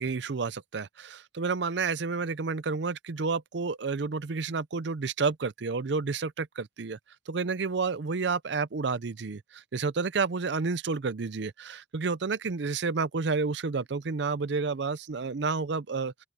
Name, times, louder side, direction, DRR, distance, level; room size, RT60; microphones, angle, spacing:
voice 1, 0.0-7.0 7.3-16.1, right 4 dB, 65° right, 0.6 m, -30 dB
open air
head